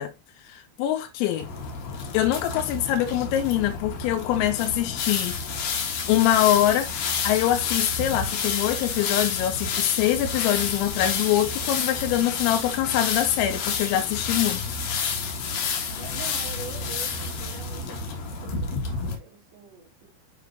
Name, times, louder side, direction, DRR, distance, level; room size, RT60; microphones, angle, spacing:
voice 1, 0.0-1.5 2.1-5.4 6.1-14.8, left 12 dB, 90° left, 3.4 m, -24 dB
sound 1, 1.4-19.2, left 5 dB, 65° left, 2.6 m, -29 dB
voice 2, 15.9-20.1, right 8 dB, 70° right, 3.4 m, -44 dB
8.0 x 5.9 x 2.3 m
omnidirectional pair, 5.8 m